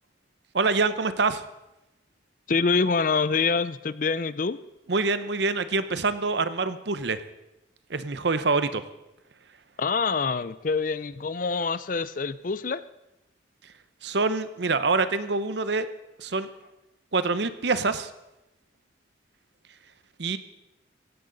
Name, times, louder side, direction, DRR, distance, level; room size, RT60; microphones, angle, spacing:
voice 1, 0.5-1.4 4.9-7.2 7.9-8.8 14.0-15.9 16.2-16.5 17.1-18.1 20.2-20.4, right 3 dB, 65° right, 12 dB, 0.8 m, -25 dB
voice 2, 2.5-4.6 9.8-12.8, left 4 dB, 45° left, 16 dB, 0.5 m, -25 dB
17.0 x 16.0 x 4.0 m, 0.95 s
head